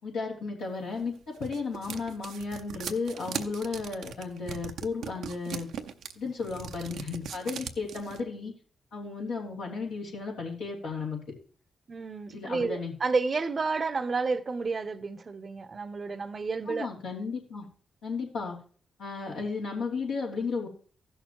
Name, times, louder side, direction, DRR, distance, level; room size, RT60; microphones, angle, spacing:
voice 1, 0.0-5.7 6.1-8.5 8.9-11.2 12.3-12.9 16.7-17.7 18.0-18.6 19.0-20.7, left 4 dB, 90° left, 3.1 m, -34 dB
sound 1, 0.9-8.2, right 7 dB, 80° right, 0.6 m, -39 dB
voice 2, 11.9-16.9, right 4 dB, 50° right, 0.7 m, -30 dB
15.0 x 6.6 x 3.1 m
supercardioid pair, 45°, 0 cm